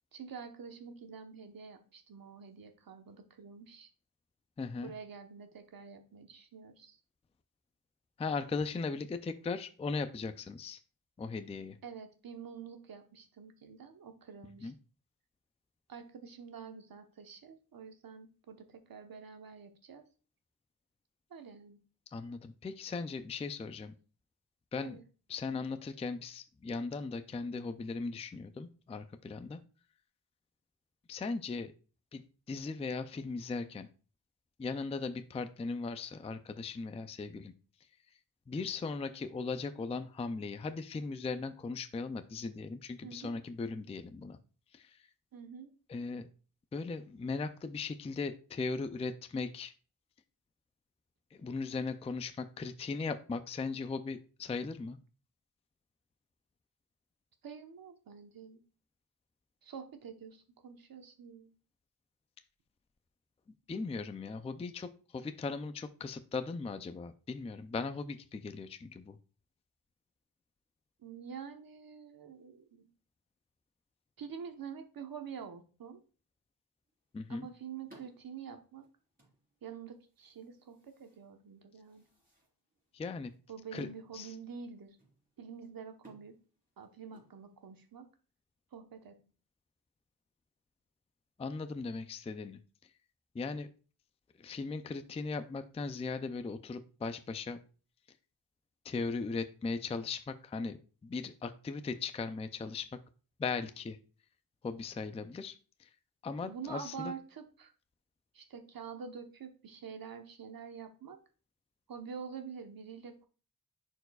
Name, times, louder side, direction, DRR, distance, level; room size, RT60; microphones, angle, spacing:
voice 1, 0.1-3.9 4.8-7.0 11.8-14.7 15.9-20.0 21.3-21.8 24.8-25.0 43.0-43.4 45.3-45.7 57.4-58.6 59.6-61.5 71.0-72.9 74.2-76.0 77.3-78.9 79.6-82.1 83.5-85.0 85.4-86.3 86.8-88.1 88.7-89.2 106.4-107.7 108.3-111.2 111.9-113.3, right 6 dB, 65° right, 6 dB, 1.0 m, -47 dB
voice 2, 4.6-4.9 8.2-10.8 11.2-11.8 14.6-14.7 22.1-23.9 24.7-25.0 25.3-29.6 31.1-31.7 32.1-33.9 34.6-37.5 38.5-44.4 44.7-45.1 45.9-46.3 46.7-49.7 51.3-55.0 63.7-69.2 77.1-77.5 82.9-83.3 83.7-83.9 84.1-84.3 91.4-92.6 93.3-93.7 94.4-97.6 98.8-103.0 103.4-104.0 104.6-105.9 106.2-107.1, left 4 dB, 20° left, 10 dB, 0.3 m, -38 dB
sound 1, 76.9-87.9, right 2 dB, 25° right, 3.4 m, -65 dB
10.5 x 4.6 x 2.3 m, 0.37 s
wide cardioid pair, 145°, 37 cm